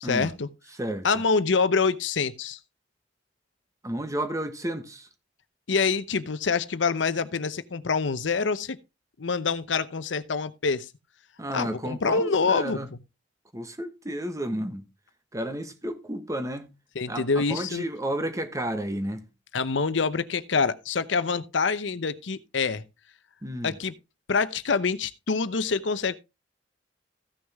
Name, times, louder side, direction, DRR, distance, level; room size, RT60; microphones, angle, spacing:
voice 1, 0.0-0.5 1.0-2.6 5.7-8.8 9.2-10.9 11.5-13.0 16.9-17.9 19.5-22.8 23.6-23.9 24.3-26.2, left 4 dB, 80° left, 0.7 m, -26 dB
voice 2, 3.8-5.1 11.4-12.9 13.5-14.9 15.3-16.7 17.1-19.2 23.4-23.8, right 1 dB, 15° right, 1.3 m, -32 dB
15.0 x 6.4 x 3.5 m
head